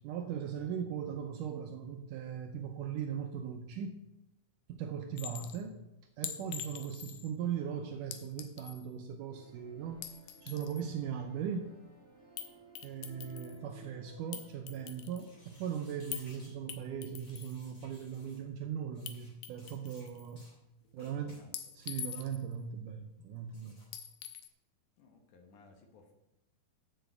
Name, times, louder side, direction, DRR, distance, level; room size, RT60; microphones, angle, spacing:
voice 1, 0.0-4.0 4.7-5.8 6.2-10.0 10.4-11.7 12.8-20.4 20.9-21.4 21.8-23.8, right 8 dB, 75° right, 5 dB, 1.9 m, -39 dB
Chink clink, 5.2-5.6 6.2-7.3 8.1-8.9 9.9-10.9 12.4-12.5 12.8-13.6 14.3-15.3 16.1-16.3 16.7-17.6 19.1-19.2 19.4-20.3 21.5-22.5 23.9-24.5, left 10 dB, 85° left, 2.6 m, -44 dB
sound 1, 9.3-17.3, right 1 dB, 10° left, 3.3 m, -58 dB
sound 2, 15.1-16.5 17.1-18.4 18.9-19.3 19.6-20.1 20.4-20.5 21.0-21.4 21.8-22.3 23.5-23.9, left 1 dB, 25° left, 2.5 m, -61 dB
voice 2, 20.8-21.6 25.0-26.1, left 4 dB, 65° left, 4 dB, 2.4 m, -59 dB
7.6 x 7.0 x 7.8 m, 0.91 s
omnidirectional pair, 4.2 m